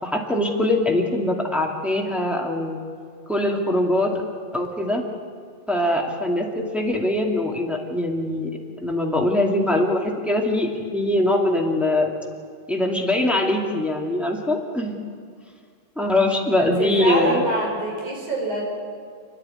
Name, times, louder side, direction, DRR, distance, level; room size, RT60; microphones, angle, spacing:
voice 1, 0.0-2.8 3.3-4.1 4.5-5.0 5.7-8.5 8.8-12.1 12.7-15.0 15.9-17.5, left 1 dB, ahead, -1 dB, 1.8 m, -22 dB
voice 2, 16.6-18.6, right 2 dB, 70° right, -2 dB, 6.5 m, -26 dB
29.5 x 10.5 x 9.8 m, 2.1 s
omnidirectional pair, 3.5 m